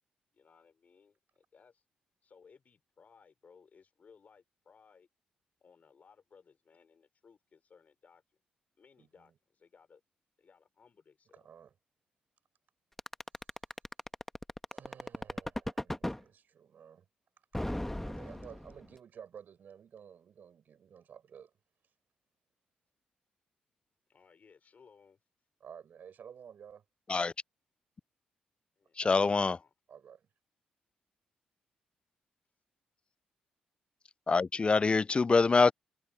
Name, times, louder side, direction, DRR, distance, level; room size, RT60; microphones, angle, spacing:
voice 1, 0.3-1.8 2.2-5.1 5.6-8.2 8.8-10.0 10.4-11.5 24.1-25.2 28.8-29.7, left 5 dB, 50° left, 4.8 m, -62 dB
voice 2, 9.0-9.3 11.3-11.7 14.7-17.0 18.0-21.5 25.6-26.8 29.0-29.1 29.9-30.2, right 8 dB, 65° right, 6.1 m, -53 dB
sound 1, 13.0-16.2 17.5-18.9, left 1 dB, 10° left, 1.5 m, -36 dB
voice 3, 29.0-29.6 34.3-35.7, left 4 dB, 30° left, 0.4 m, -25 dB
hypercardioid pair, 45°, 3 cm